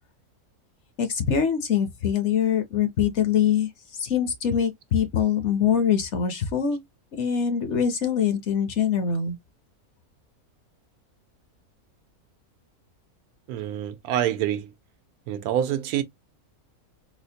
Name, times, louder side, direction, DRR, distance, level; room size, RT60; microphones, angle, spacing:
voice 1, 1.0-3.7 4.0-6.8 7.2-9.4, left 8 dB, 60° left, 0.9 m, -23 dB
voice 2, 13.5-14.7 15.3-16.0, right 10 dB, 85° right, 1.1 m, -26 dB
4.2 x 2.1 x 2.7 m
omnidirectional pair, 1.6 m